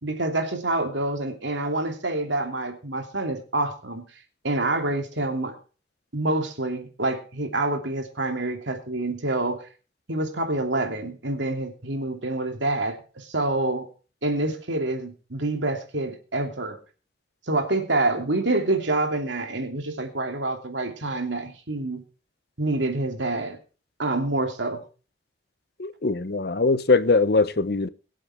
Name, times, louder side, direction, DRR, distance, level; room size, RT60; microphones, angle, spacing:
voice 1, 0.0-4.0 4.4-5.5 6.1-9.7 10.1-13.9 14.2-16.8 17.5-22.0 22.6-23.6 24.0-24.8, right 2 dB, 85° right, 2.9 m, -27 dB
voice 2, 25.8-27.9, left 3 dB, 60° left, 0.8 m, -21 dB
22.5 x 7.9 x 3.6 m
head